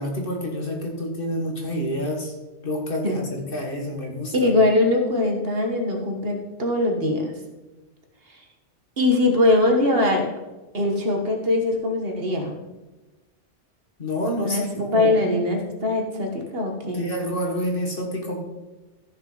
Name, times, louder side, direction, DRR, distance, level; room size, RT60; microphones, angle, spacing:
voice 1, 0.0-2.3 2.6-4.3 14.0-15.1 16.9-18.4, equal, 50° left, 1 dB, 1.9 m, -28 dB
voice 2, 4.3-7.3 8.3-8.4 9.0-10.2 10.7-12.6 14.4-17.1, left 2 dB, 55° right, 3 dB, 1.6 m, -22 dB
14.5 x 6.6 x 4.0 m, 1.1 s
omnidirectional pair, 1.2 m